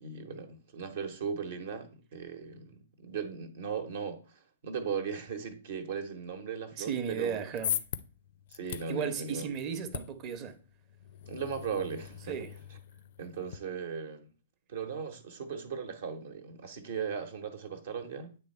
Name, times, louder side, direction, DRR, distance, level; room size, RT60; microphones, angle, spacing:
voice 1, 0.0-7.4 8.5-9.4 11.3-12.4 13.2-14.3 14.7-18.4, right 6 dB, 55° right, 1.0 m, -38 dB
voice 2, 6.8-7.7 8.9-10.6 12.3-12.5, right 7 dB, 30° right, 0.8 m, -35 dB
sound 1, 7.2-13.6, left 10 dB, 55° left, 0.4 m, -41 dB
8.8 x 3.3 x 4.3 m
figure-of-eight pair, 115°, 0 cm